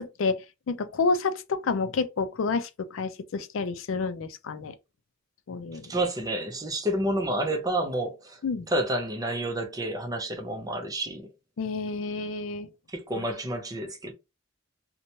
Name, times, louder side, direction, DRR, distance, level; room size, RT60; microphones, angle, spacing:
voice 1, 0.0-4.8 5.5-5.9 8.4-8.7 11.6-12.7 13.2-13.3, left 4 dB, 90° left, 0.4 m, -29 dB
voice 2, 5.8-8.4 8.7-11.3 12.9-14.1, right 1 dB, 20° right, 0.5 m, -29 dB
2.9 x 2.2 x 2.7 m
head